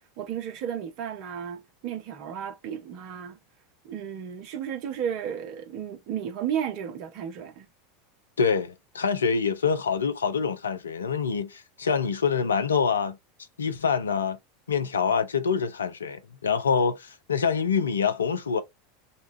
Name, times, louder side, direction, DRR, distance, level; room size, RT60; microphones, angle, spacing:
voice 1, 0.2-3.4 3.8-7.7, right 9 dB, 50° right, 0.8 m, -33 dB
voice 2, 8.4-13.2 13.6-14.4 14.7-18.6, left 6 dB, 75° left, 0.5 m, -25 dB
4.0 x 2.3 x 2.6 m
figure-of-eight pair, 80°, 0 cm